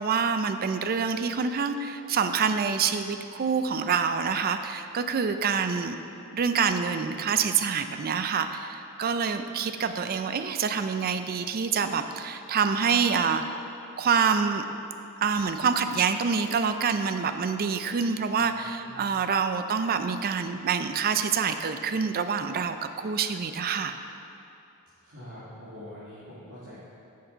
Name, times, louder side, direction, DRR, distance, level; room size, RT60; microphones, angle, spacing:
voice 1, 0.0-6.0 6.3-13.4 14.0-14.6 15.2-23.9, right 6 dB, 45° right, 9 dB, 0.4 m, -26 dB
voice 2, 18.3-19.1 25.0-26.8, left 1 dB, 60° right, -11 dB, 2.1 m, -45 dB
9.9 x 6.6 x 3.9 m, 2.7 s
head